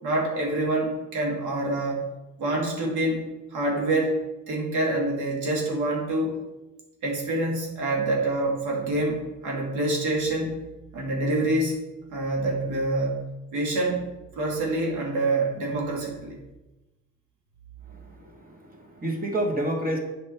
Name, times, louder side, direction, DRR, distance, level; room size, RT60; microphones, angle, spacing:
voice 1, 0.0-2.1 2.4-3.2 3.5-4.2 4.5-6.3 7.0-10.5 10.9-11.8 12.1-14.0 14.3-16.4, right 2 dB, 90° right, -2 dB, 2.3 m, -26 dB
voice 2, 17.9-20.0, right 1 dB, 30° right, 1 dB, 1.9 m, -29 dB
7.8 x 5.3 x 4.5 m, 1.0 s
cardioid pair, 90°, 30 cm